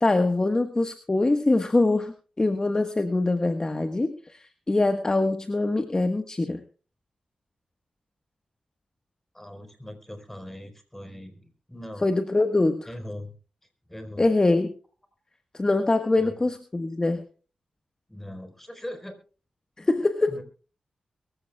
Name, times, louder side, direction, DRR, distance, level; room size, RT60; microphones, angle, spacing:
voice 1, 0.0-6.6 12.0-12.9 14.2-14.7 15.5-17.2 19.8-20.3, left 2 dB, 30° left, 8 dB, 1.4 m, -23 dB
voice 2, 9.3-12.1 12.8-13.4 13.9-14.3 16.2-16.3 18.1-19.2 20.3-20.4, left 1 dB, 10° left, 8 dB, 4.4 m, -40 dB
23.0 x 15.0 x 2.3 m, 0.37 s
cardioid pair, 60°, 3 cm